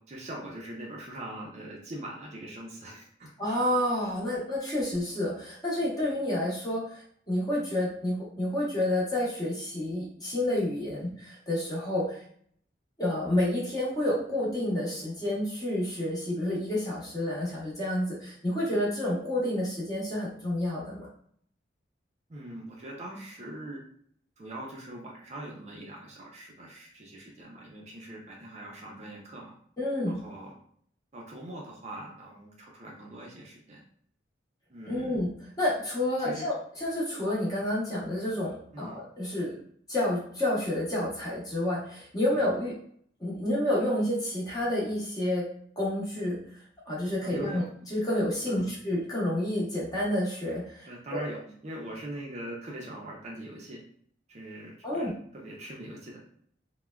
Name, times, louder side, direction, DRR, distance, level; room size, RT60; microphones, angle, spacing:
voice 1, 0.1-3.3 10.9-11.1 22.3-23.8 24.4-29.5 30.1-30.5 31.1-33.8 34.7-35.2 36.2-36.5 38.7-39.0 42.3-42.5 47.2-47.7 48.5-48.7 50.9-51.4 51.6-53.8 54.3-56.2, right 1 dB, 35° right, -2 dB, 0.4 m, -42 dB
voice 2, 3.4-7.0 7.3-12.2 13.0-21.1 29.8-30.2 34.8-35.3 35.6-39.5 39.9-42.7 43.2-45.4 45.8-46.6 46.9-51.4 54.8-55.1, left 1 dB, 20° left, -6 dB, 0.8 m, -29 dB
3.3 x 2.1 x 2.3 m, 0.63 s
head